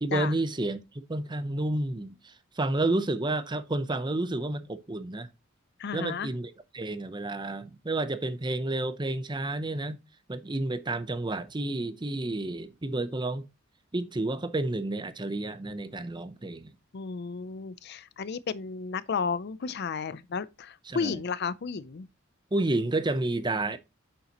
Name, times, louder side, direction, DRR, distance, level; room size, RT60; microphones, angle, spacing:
voice 1, 0.0-5.3 5.9-10.0 10.3-13.4 13.9-16.7 20.9-21.2 22.5-23.8, right 2 dB, 20° right, 0.7 m, -30 dB
voice 2, 5.8-6.3 16.9-22.1, left 5 dB, 55° left, 0.5 m, -33 dB
8.9 x 6.8 x 2.9 m
head